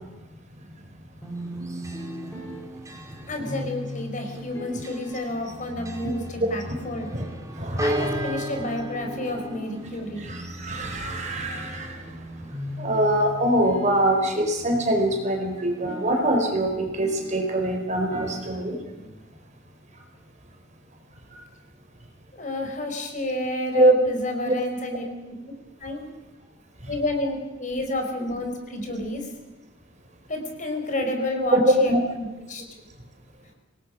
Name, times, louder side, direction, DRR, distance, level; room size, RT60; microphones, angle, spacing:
sound 1, 1.2-19.2, left 1 dB, 15° left, 6.7 m, -39 dB
Church bell, 1.2-16.3, right 1 dB, 15° right, 2.5 m, -38 dB
voice 1, 3.3-7.1 7.8-10.2 22.3-25.0 25.8-26.0 26.9-29.3 30.3-32.6, left 1 dB, 40° left, 3 dB, 4.5 m, -30 dB
voice 2, 6.4-6.7 7.1-7.2 7.6-8.0 10.2-12.2 12.8-18.8 21.3-21.4 23.7-23.9 24.4-24.5 26.8-26.9 31.5-32.0, right 1 dB, 40° right, 3 dB, 4.5 m, -23 dB
26.5 x 19.0 x 6.3 m, 1.1 s
head